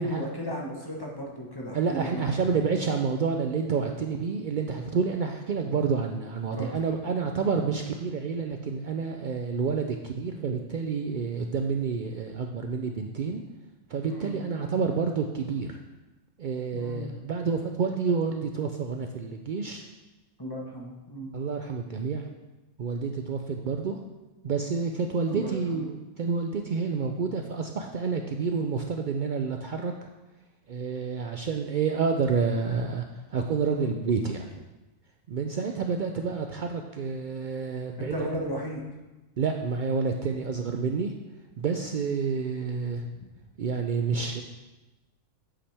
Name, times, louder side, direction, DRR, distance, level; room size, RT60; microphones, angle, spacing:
voice 1, 0.0-2.4 6.6-6.7 14.1-14.4 16.7-17.0 20.4-21.3 25.3-25.8 33.6-33.9 38.0-38.8 43.2-43.3, equal, 20° left, -2 dB, 1.1 m, -35 dB
voice 2, 1.7-13.4 13.9-15.8 16.4-19.8 21.3-22.3 22.8-24.0 24.4-29.9 30.7-33.0 33.3-34.6 35.3-38.3 39.4-41.1 41.6-43.1 43.6-44.4, right 5 dB, 80° right, 4 dB, 0.4 m, -29 dB
8.5 x 7.3 x 3.4 m, 1.1 s
omnidirectional pair, 1.4 m